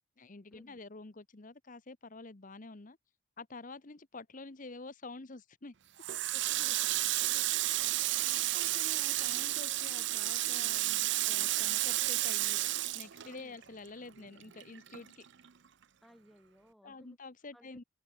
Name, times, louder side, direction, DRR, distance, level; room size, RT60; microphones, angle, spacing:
voice 1, 0.2-3.0 3.4-5.7 8.5-15.3 16.8-17.8, left 3 dB, 40° left, 1.0 m, -48 dB
Water tap faucet, 6.0-13.9 14.2-15.5, right 16 dB, 60° right, 0.6 m, -32 dB
voice 2, 6.3-7.5 13.2-13.6 16.0-17.2 17.5-17.9, equal, ahead, 4.5 m, -60 dB
head